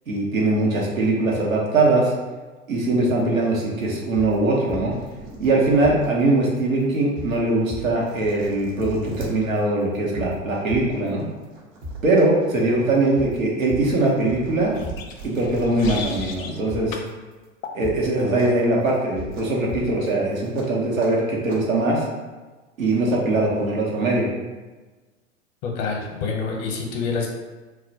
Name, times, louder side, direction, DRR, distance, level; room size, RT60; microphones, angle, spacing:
voice 1, 0.1-2.1 2.7-4.9 5.4-11.2 12.0-14.7 15.2-17.0 17.7-22.0 22.8-24.3, right 2 dB, 90° right, -3 dB, 0.9 m, -21 dB
sound 1, 3.4-3.6 3.9-5.1 5.4-5.5 5.8-6.0 6.4-6.6 6.9-7.3 7.7-8.1 8.4-8.5 8.8-9.0 9.4-9.6 9.9-11.1 11.4-11.5 11.8-12.0 12.4-12.6 12.9-13.3 13.7-14.5 14.8-15.0 15.4-15.6 15.9-17.1 17.4-17.5 17.8-18.0 18.4-18.6 18.9-19.3 19.7-20.1 20.4-20.5, left 1 dB, 25° right, 0.5 m, -36 dB
sound 2, 5.0-6.1 6.7-6.8 7.6-7.7 8.0-9.3 10.6-10.8 11.2-12.2 12.6-16.1 18.4-18.6 18.8-18.9 19.3-19.5 20.5-20.7 21.0-21.1 21.5-21.6, right 3 dB, 65° right, 0.9 m, -39 dB
sound 3, 14.7-16.6 16.9-17.1 17.6-17.8, left 5 dB, 80° left, 0.5 m, -36 dB
voice 2, 25.6-27.3, left 4 dB, 40° left, 0 dB, 0.7 m, -27 dB
2.3 x 2.1 x 3.9 m, 1.3 s
hypercardioid pair, 100°, 39 cm